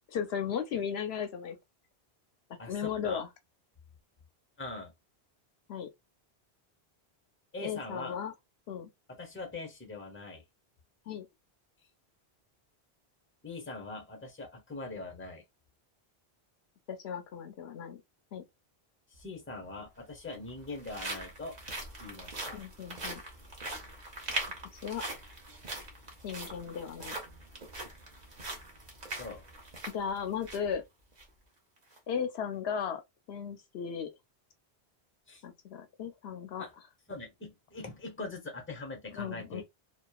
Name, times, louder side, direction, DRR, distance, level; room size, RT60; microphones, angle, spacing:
voice 1, 0.1-1.6 2.7-3.3 5.7-5.9 7.6-8.3 8.7-8.9 11.1-11.3 16.9-18.0 18.3-18.4 22.5-23.2 24.7-25.0 26.2-27.2 29.9-30.8 32.1-33.0 33.3-34.1 35.4-36.6 39.1-39.6, left 7 dB, 75° left, 0.8 m, -36 dB
voice 2, 2.6-3.2 4.6-4.9 7.5-8.2 9.1-10.4 13.4-15.4 19.1-21.6 22.0-22.6 29.2-29.4 35.3-35.4 36.6-36.7 37.1-39.6, left 3 dB, 15° left, 0.7 m, -42 dB
sound 1, 19.1-19.2 20.2-30.7 31.1-31.2 31.8-32.0, right 2 dB, 45° right, 0.9 m, -41 dB
2.9 x 2.2 x 2.3 m
omnidirectional pair, 1.1 m